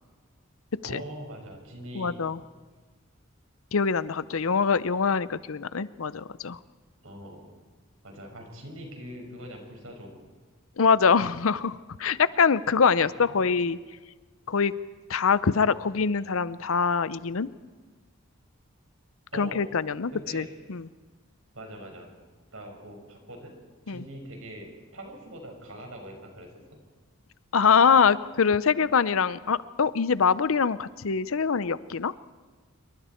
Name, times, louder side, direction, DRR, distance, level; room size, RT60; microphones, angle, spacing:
voice 1, 0.8-2.2 7.0-7.4 8.0-10.2 13.0-13.4 19.3-19.7 20.1-20.5 21.5-22.1 22.5-23.5 23.9-26.8, equal, 75° right, 2 dB, 5.5 m, -42 dB
voice 2, 1.9-2.4 3.7-6.6 10.8-13.8 14.5-14.7 15.1-17.5 19.3-20.4 20.7-20.9 23.9-24.0 27.5-32.1, left 5 dB, 75° left, 17 dB, 0.6 m, -24 dB
27.0 x 23.5 x 4.4 m, 1.4 s
head